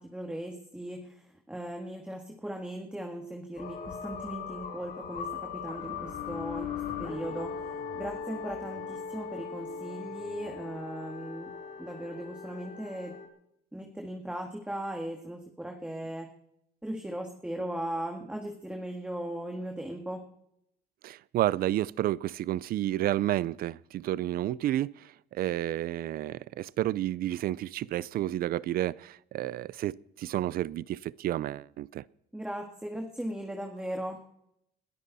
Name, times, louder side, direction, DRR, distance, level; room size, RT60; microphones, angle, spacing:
voice 1, 0.0-11.5 11.8-13.2 13.7-16.3 16.8-20.3 32.3-34.2, right 1 dB, 5° right, 1.9 m, -38 dB
sound 1, 3.6-13.3, left 7 dB, 60° left, 3.3 m, -39 dB
voice 2, 21.0-32.0, right 13 dB, 60° right, 0.5 m, -31 dB
21.5 x 13.0 x 4.1 m
cardioid pair, 110°, 17 cm